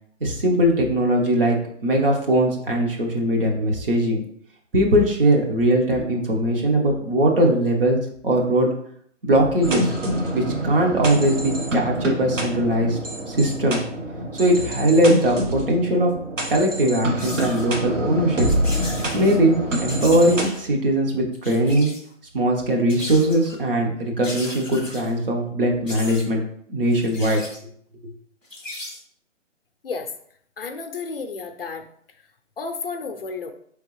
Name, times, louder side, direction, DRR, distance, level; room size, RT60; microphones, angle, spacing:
voice 1, 0.2-1.6 1.8-4.2 4.7-8.0 8.2-8.7 9.2-9.9 10.3-13.0 13.3-13.8 14.3-16.1 16.5-18.5 19.1-21.9 22.3-26.4 26.7-27.4, right 1 dB, 45° right, 1 dB, 1.1 m, -20 dB
sound 1, 9.6-20.5, equal, 75° right, 1.3 m, -26 dB
sound 2, 16.5-16.6 17.2-17.6 18.5-19.4 19.9-20.6 21.3-22.1 22.9-23.6 24.2-25.1 25.9-26.3 26.9-27.6 28.4-29.0, left 1 dB, 10° right, 0.6 m, -37 dB
voice 2, 30.6-31.9 32.6-33.5, left 4 dB, 50° left, 6 dB, 0.5 m, -31 dB
4.9 x 3.5 x 3.1 m, 0.66 s
hypercardioid pair, 160°, 38 cm